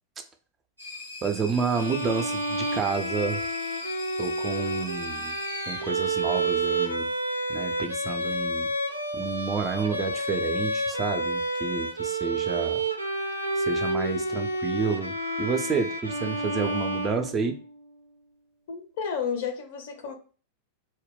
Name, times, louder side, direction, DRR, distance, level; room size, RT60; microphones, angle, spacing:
sound 1, 0.8-7.2, left 3 dB, 90° left, 0.8 m, -41 dB
voice 1, 1.2-3.4 4.2-5.4 5.7-7.1 7.5-8.7 9.1-12.8 13.6-17.6, right 5 dB, 25° right, 5 dB, 0.4 m, -30 dB
Bowed string instrument, 1.7-17.7, right 2 dB, 90° right, 0.4 m, -29 dB
voice 2, 18.7-20.1, left 6 dB, 55° left, 5 dB, 0.5 m, -31 dB
2.2 x 2.1 x 3.5 m, 0.38 s
figure-of-eight pair, 90°, 0 cm